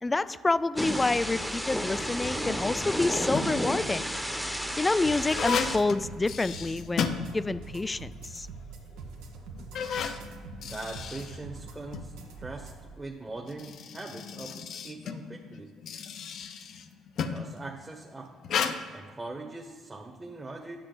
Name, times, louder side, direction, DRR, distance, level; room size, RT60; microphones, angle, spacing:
voice 1, 0.0-4.1 4.8-8.5, left 3 dB, 25° left, 17 dB, 0.3 m, -28 dB
Thunder / Rain, 0.8-5.8, equal, ahead, 0.9 m, -32 dB
sound 1, 3.3-3.7 4.4-7.8 8.2-8.3 9.0-9.1 9.6-12.1 13.3-17.5 18.4-18.7, left 6 dB, 60° left, 0.6 m, -34 dB
sound 2, 5.0-12.8, right 4 dB, 80° right, 1.1 m, -44 dB
voice 2, 10.6-15.7 17.3-18.3 18.9-20.8, right 2 dB, 20° right, 0 dB, 1.2 m, -41 dB
10.0 x 6.7 x 3.9 m, 1.5 s
hypercardioid pair, 55°, 0 cm